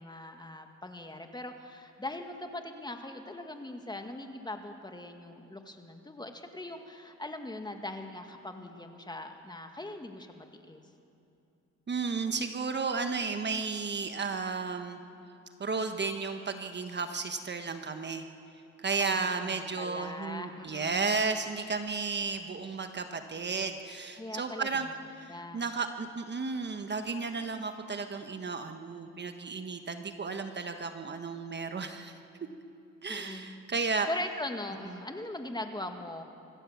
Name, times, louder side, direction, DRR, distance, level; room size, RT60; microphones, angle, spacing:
voice 1, 0.0-10.8 19.0-21.3 24.2-24.8 25.3-25.6 33.1-33.6 34.1-36.2, left 1 dB, 15° left, 5 dB, 1.9 m, -41 dB
voice 2, 11.9-15.0 15.6-18.2 18.8-24.9 25.2-32.1 33.0-34.1, right 4 dB, 35° right, 7 dB, 1.3 m, -33 dB
26.0 x 14.5 x 7.3 m, 2.7 s
cardioid pair, 90°, 30 cm